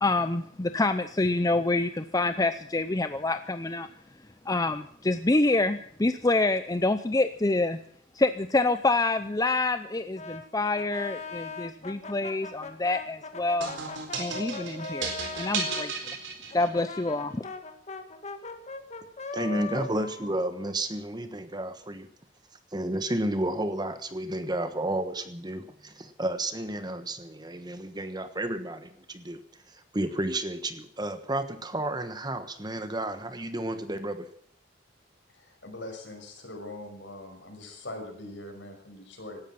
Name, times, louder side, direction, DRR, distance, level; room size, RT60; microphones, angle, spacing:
voice 1, 0.0-3.9 4.5-7.8 8.1-13.7 14.2-15.1 15.3-16.1 16.5-17.4, left 2 dB, 20° left, 10 dB, 0.6 m, -27 dB
Brass instrument, 10.1-15.9 16.5-21.3, left 4 dB, 35° left, 1.8 m, -40 dB
sound 1, 13.6-17.0, right 4 dB, 70° right, 4.1 m, -34 dB
voice 2, 19.3-22.1 22.7-29.4 29.7-34.3, right 1 dB, 20° right, 10 dB, 1.2 m, -32 dB
voice 3, 35.3-39.4, left 1 dB, 65° left, 3 dB, 6.0 m, -42 dB
17.5 x 13.0 x 5.9 m, 0.62 s
head